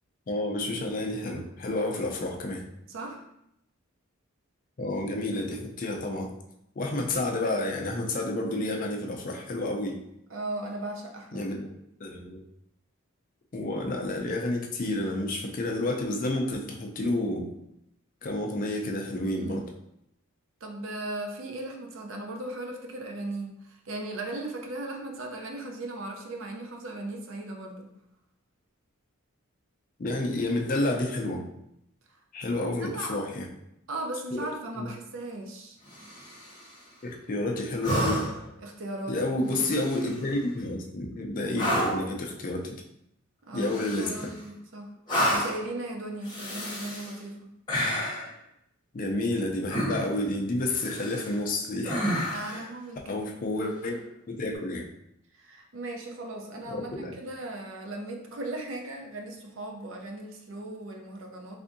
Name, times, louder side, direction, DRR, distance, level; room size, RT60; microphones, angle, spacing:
voice 1, 0.3-2.7 4.8-6.3 6.8-10.0 11.3-11.7 12.0-12.4 13.5-17.5 18.2-19.7 30.0-31.5 32.3-33.5 34.8-34.9 37.0-38.3 39.1-42.8 43.5-44.3 48.9-52.7 53.1-54.0 54.3-54.9 56.7-57.1, left 2 dB, 40° left, 1 dB, 0.4 m, -30 dB
voice 2, 2.9-3.2 10.3-11.4 19.2-19.6 20.6-27.9 32.5-33.2 33.9-35.8 38.6-39.2 43.5-47.5 52.3-53.3 55.4-61.6, right 2 dB, 60° right, 2 dB, 0.5 m, -37 dB
sound 1, 35.9-36.6 37.8-38.5 39.5-40.2 41.5-42.1 43.6-44.4 45.1-45.7 46.2-47.1 47.7-48.3 49.7-50.2 50.7-51.4 51.8-52.6 54.5-54.6, equal, 20° left, 1.0 m, -30 dB
3.4 x 2.6 x 2.5 m, 0.79 s
head